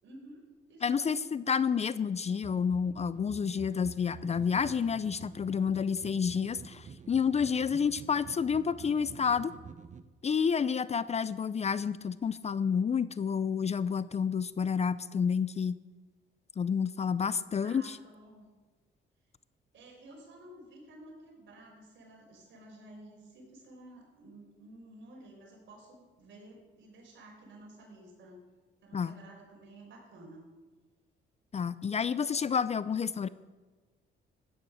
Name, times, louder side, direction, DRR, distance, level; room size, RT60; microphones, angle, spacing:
voice 1, 0.0-0.4 0.7-1.3 17.4-18.4 19.7-28.4 28.8-30.5, right 1 dB, 70° right, -1 dB, 5.4 m, -52 dB
voice 2, 0.8-9.5 10.2-15.8 16.6-18.0 28.9-29.1 31.5-33.3, left 6 dB, 35° left, 16 dB, 0.5 m, -29 dB
sound 1, 2.4-10.0, right 6 dB, 40° right, 0.8 m, -49 dB
15.5 x 9.6 x 6.4 m, 1.3 s
cardioid pair, 90°, 20 cm